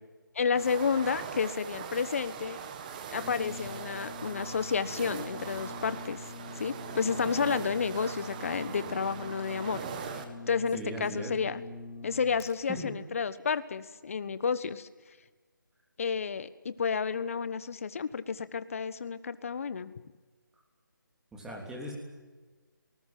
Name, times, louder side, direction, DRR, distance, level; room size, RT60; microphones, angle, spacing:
voice 1, 0.3-2.6 3.1-6.2 6.6-9.8 10.5-11.6 12.0-14.9 16.0-19.9, left 6 dB, 40° left, 14 dB, 1.2 m, -31 dB
sound 1, 0.5-10.2, right 7 dB, 25° right, 1.8 m, -41 dB
Brass instrument, 3.1-12.5, left 2 dB, 10° left, 4.9 m, -45 dB
voice 2, 10.7-11.3 12.7-12.9 21.3-21.9, right 1 dB, 5° right, -1 dB, 3.3 m, -39 dB
27.5 x 19.5 x 7.6 m, 1.3 s
figure-of-eight pair, 165°, 11 cm